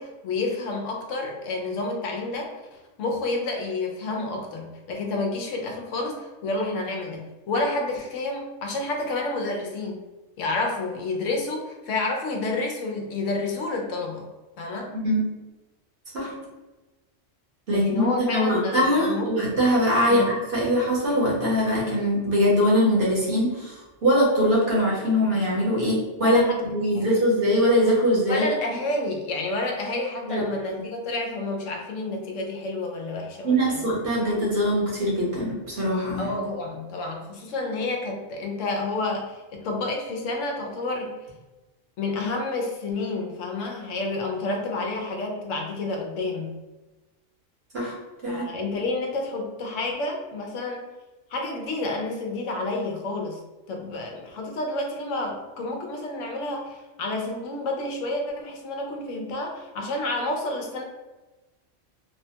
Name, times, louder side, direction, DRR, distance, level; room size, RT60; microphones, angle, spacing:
voice 1, 0.0-10.0 10.4-14.3 14.6-15.0 17.7-19.3 20.1-20.3 26.2-26.6 26.9-27.1 28.3-33.8 36.2-41.1 42.0-46.5 48.3-50.8 51.3-53.4 53.7-60.8, left 2 dB, 80° left, 1 dB, 1.0 m, -29 dB
voice 2, 17.7-28.4 30.3-30.4 33.4-36.3 47.7-47.9 48.2-48.5, equal, 55° right, -6 dB, 1.2 m, -22 dB
3.2 x 2.2 x 2.7 m, 1.1 s
omnidirectional pair, 1.3 m